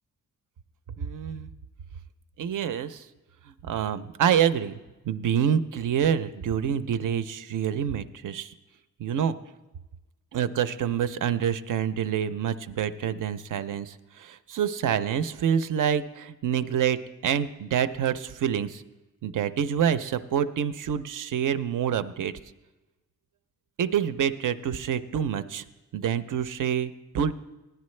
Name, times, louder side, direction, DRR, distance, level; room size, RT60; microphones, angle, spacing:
voice 1, 1.0-1.5 2.4-3.1 3.7-4.8 5.0-8.5 9.0-9.3 10.3-18.8 19.2-22.3 23.8-25.6 25.9-27.3, right 8 dB, 70° right, 12 dB, 0.5 m, -27 dB
16.5 x 10.5 x 3.2 m, 1.1 s
wide cardioid pair, 160°, 33 cm